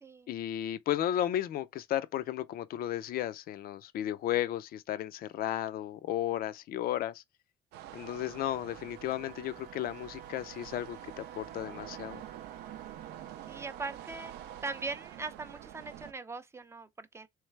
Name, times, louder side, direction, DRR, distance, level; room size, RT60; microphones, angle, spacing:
voice 1, 0.3-7.2 7.9-11.0 11.4-12.2, left 12 dB, 60° left, 0.5 m, -34 dB
sound 1, 7.7-16.1, right 12 dB, 80° right, 0.5 m, -47 dB
Wind instrument woodwind instrument, 8.0-15.2, right 8 dB, 50° right, 0.7 m, -52 dB
voice 2, 13.5-14.3 14.6-17.3, right 3 dB, 15° right, 0.5 m, -40 dB
3.2 x 3.2 x 3.2 m
cardioid pair, 110°, 17 cm